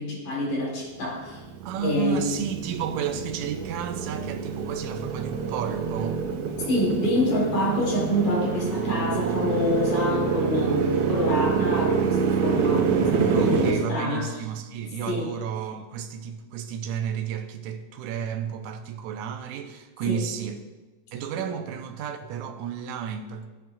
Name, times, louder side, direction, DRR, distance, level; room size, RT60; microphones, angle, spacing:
voice 1, 0.0-1.4 1.8-2.2 6.7-14.3 15.1-15.3 20.1-20.2, left 1 dB, 75° left, 3.8 m, -27 dB
Motorcycle, 1.1-13.7, right 6 dB, 70° right, 1.4 m, -26 dB
voice 2, 1.6-6.2 13.3-20.6 21.1-23.5, right 8 dB, 90° right, 2.0 m, -32 dB
13.5 x 8.7 x 2.3 m
omnidirectional pair, 3.4 m